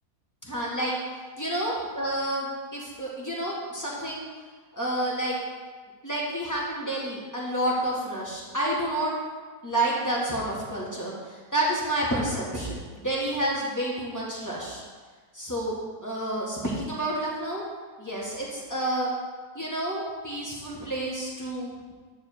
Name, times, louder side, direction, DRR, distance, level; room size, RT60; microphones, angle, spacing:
voice 1, 0.4-0.9 1.4-4.3 4.7-5.4 6.0-9.1 9.6-14.8 15.3-15.7 16.0-17.6 18.0-19.1 19.5-21.9, right 1 dB, 10° left, -5 dB, 1.7 m, -29 dB
10.5 x 3.5 x 6.8 m, 1.5 s
omnidirectional pair, 1.7 m